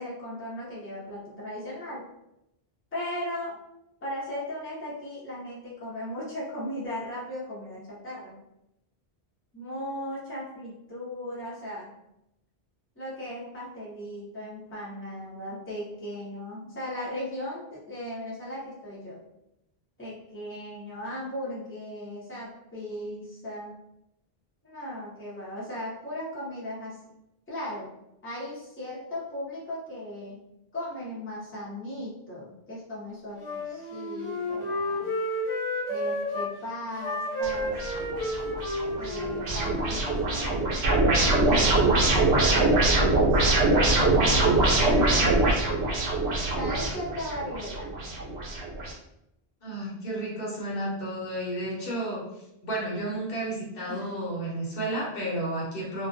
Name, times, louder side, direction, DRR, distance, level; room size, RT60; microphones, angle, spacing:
voice 1, 0.0-2.0 2.9-3.6 4.0-8.3 9.5-11.9 13.0-19.2 20.0-23.7 24.6-27.0 27.5-27.9 28.2-30.4 30.7-35.1 35.9-37.8 39.0-40.7 41.3-41.9 42.3-43.5 43.9-45.4 46.5-47.9 53.9-54.1, left 1 dB, 15° left, -7 dB, 0.7 m, -37 dB
Wind instrument woodwind instrument, 33.4-36.5 36.9-40.4, left 1 dB, 45° left, 0.4 m, -31 dB
sound 1, 37.4-48.9, right 2 dB, 80° right, 0.9 m, -23 dB
voice 2, 49.6-52.2 52.6-56.1, right 1 dB, 65° left, -5 dB, 0.9 m, -32 dB
2.3 x 2.2 x 2.5 m, 0.85 s
omnidirectional pair, 1.1 m